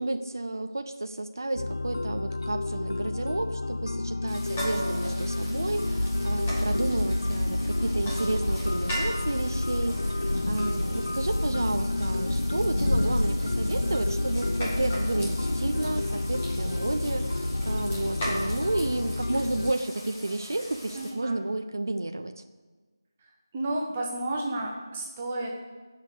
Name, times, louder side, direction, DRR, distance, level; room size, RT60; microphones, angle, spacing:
voice 1, 0.0-22.3, right 2 dB, 50° right, 7 dB, 0.6 m, -31 dB
sound 1, 1.6-19.7, left 2 dB, 80° left, 0.3 m, -31 dB
sound 2, 4.3-21.1, equal, 10° left, 2.1 m, -40 dB
Thunder / Rain, 5.2-19.5, left 1 dB, 45° left, 1.0 m, -31 dB
voice 2, 20.9-21.4 23.2-25.6, right 1 dB, 10° right, -1 dB, 0.7 m, -32 dB
13.5 x 6.6 x 8.2 m, 1.4 s
figure-of-eight pair, 180°, 2 cm